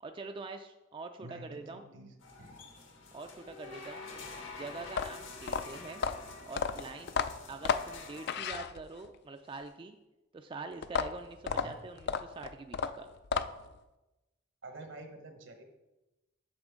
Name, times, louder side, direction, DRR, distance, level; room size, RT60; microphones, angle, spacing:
voice 1, 0.0-1.8 3.1-4.1 4.5-6.0 6.5-7.2 7.5-10.0 10.3-13.1, right 3 dB, 25° right, 6 dB, 0.3 m, -45 dB
voice 2, 1.2-2.6 11.5-11.8 14.6-15.6, right 1 dB, 75° right, 5 dB, 1.1 m, -48 dB
sound 1, 2.2-8.5, left 4 dB, 75° left, 1.4 m, -48 dB
sound 2, 4.8-9.2 10.8-13.8, left 6 dB, 55° left, 0.4 m, -33 dB
8.8 x 6.4 x 3.6 m, 1.0 s
head